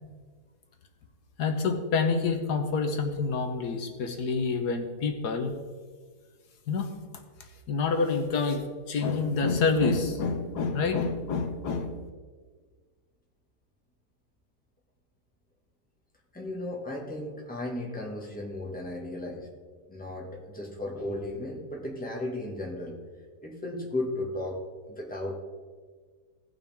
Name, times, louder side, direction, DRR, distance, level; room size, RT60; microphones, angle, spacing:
voice 1, 1.4-5.5 6.7-6.9 7.7-12.0, left 4 dB, 80° left, 4 dB, 1.5 m, -27 dB
voice 2, 16.3-19.5 19.9-23.0 23.4-24.6 24.9-25.4, left 1 dB, 5° left, -1 dB, 1.5 m, -35 dB
17.0 x 5.8 x 3.5 m, 1.5 s
omnidirectional pair, 1.7 m